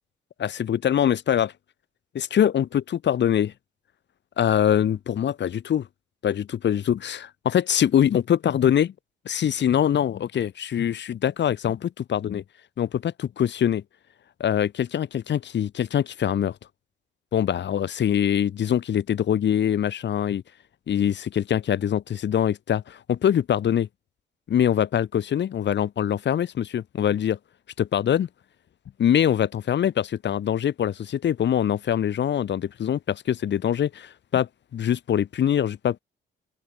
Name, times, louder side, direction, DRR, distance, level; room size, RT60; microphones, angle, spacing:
voice 1, 0.4-1.5 2.1-3.5 4.4-5.9 6.2-8.9 9.3-12.4 12.8-13.8 14.4-16.6 17.3-20.4 20.9-23.9 24.5-27.4 27.8-28.3 29.0-36.0, left 9 dB, 65° left, 7.2 m, -23 dB
open air
cardioid pair, 90°, 20 cm